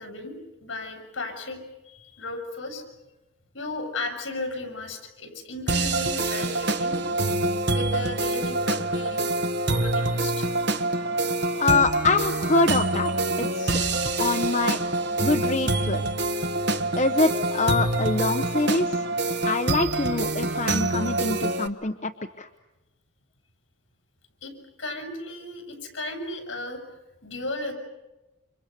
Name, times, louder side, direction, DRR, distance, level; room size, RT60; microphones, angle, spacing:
voice 1, 0.0-1.6 1.9-2.8 3.5-7.0 7.7-9.3 9.6-10.5 24.4-24.5 24.8-26.8 27.2-27.7, left 2 dB, 65° left, 4 dB, 8.0 m, -35 dB
sound 1, 5.7-21.7, right 2 dB, 55° right, 1.4 m, -26 dB
voice 2, 11.6-13.1 13.4-13.8 14.2-14.8 15.2-16.0 17.0-19.1 19.4-22.1 22.4-22.5, left 3 dB, 35° left, 4 dB, 1.0 m, -24 dB
29.5 x 27.5 x 6.9 m, 1.0 s
head